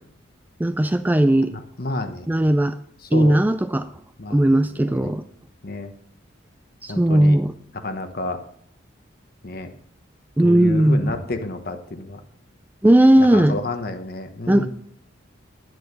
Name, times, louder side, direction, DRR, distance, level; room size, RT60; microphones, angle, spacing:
voice 1, 0.6-1.5 2.3-2.8 3.1-3.9 4.3-5.2 6.8-7.5 10.4-11.2 12.8-13.6 14.5-14.7, right 1 dB, 10° right, 10 dB, 0.3 m, -17 dB
voice 2, 1.5-2.5 3.1-3.4 4.2-4.5 4.8-5.2 5.6-5.9 6.9-7.4 7.8-8.4 9.4-9.7 10.4-12.2 13.2-14.7, left 2 dB, 50° left, 8 dB, 1.1 m, -30 dB
10.0 x 9.4 x 5.3 m, 0.64 s
head